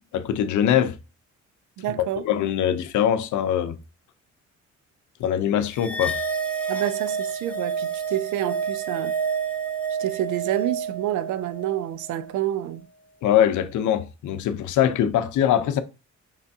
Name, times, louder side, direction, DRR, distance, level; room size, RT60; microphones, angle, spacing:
voice 1, 0.1-1.0 1.9-3.8 5.2-6.2 13.2-15.8, left 10 dB, 75° left, 0.6 m, -22 dB
voice 2, 1.8-2.2 6.7-9.1 10.0-12.9, right 12 dB, 75° right, 0.5 m, -28 dB
sound 1, 5.8-12.3, right 5 dB, 5° left, 0.7 m, -29 dB
4.9 x 3.4 x 2.7 m
cardioid pair, 90°, 30 cm